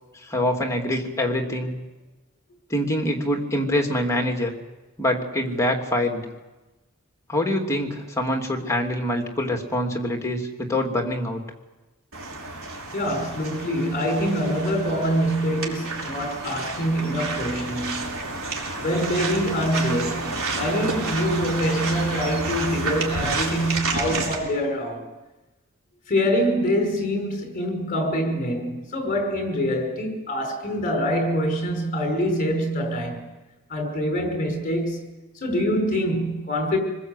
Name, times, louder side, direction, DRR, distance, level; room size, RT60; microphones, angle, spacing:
voice 1, 0.2-1.8 2.7-4.5 5.0-6.3 7.3-11.4, left 1 dB, 15° left, 2.9 m, -25 dB
sound 1, 12.1-24.3, right 3 dB, 65° right, 4.9 m, -30 dB
voice 2, 12.9-18.2 18.8-25.1 26.1-33.2 33.7-35.0 35.4-36.8, equal, 40° left, 5.8 m, -25 dB
27.0 x 20.5 x 8.2 m
head